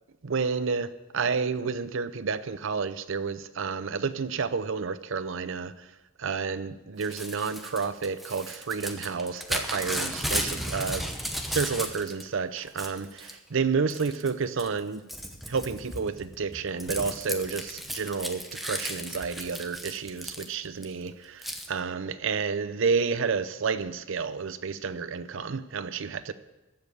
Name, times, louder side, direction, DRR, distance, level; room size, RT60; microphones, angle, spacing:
voice 1, 0.2-5.7 6.2-11.0 11.5-15.0 15.4-26.3, right 5 dB, 65° right, 0.6 m, -30 dB
Crumpling crinkling / Tearing, 7.0-12.2 12.6-13.4 13.9-14.3 14.6-20.8 21.4-21.7, equal, ahead, 0.9 m, -35 dB
14.5 x 5.3 x 9.0 m
head